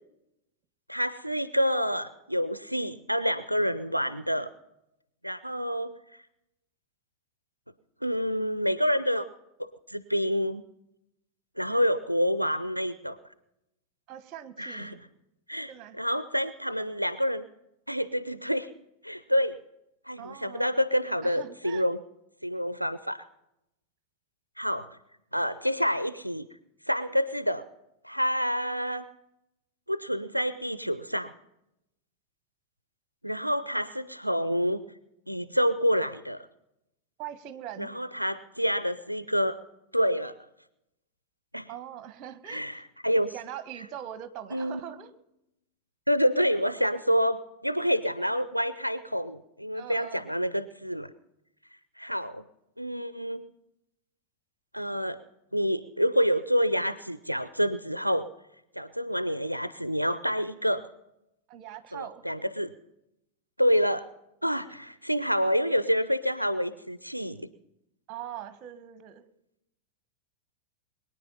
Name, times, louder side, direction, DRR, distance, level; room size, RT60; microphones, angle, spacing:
voice 1, 0.9-4.5 5.2-5.9 8.0-9.3 9.9-10.6 11.6-13.2 14.6-15.0 15.5-15.7 16.0-17.4 17.9-18.7 19.0-19.6 20.1-22.0 22.4-23.3 24.6-24.9 25.3-26.5 26.9-27.6 28.0-29.0 29.9-31.3 33.2-34.8 35.3-36.5 37.8-39.6 39.9-40.3 41.5-41.7 42.5-43.3 44.5-44.8 46.1-51.1 52.0-52.4 52.8-53.5 54.7-55.2 55.5-58.3 58.8-60.9 61.9-62.7 63.6-64.1 64.4-67.5, equal, 90° right, 14 dB, 0.5 m, -28 dB
voice 2, 14.1-15.0 15.7-16.0 20.2-20.7 21.2-21.8 37.2-37.9 41.7-42.8 43.2-45.1 49.7-50.3 61.5-62.2 68.1-69.2, right 11 dB, 35° right, 13 dB, 1.3 m, -42 dB
22.5 x 9.7 x 5.5 m, 0.86 s
figure-of-eight pair, 90°, 0 cm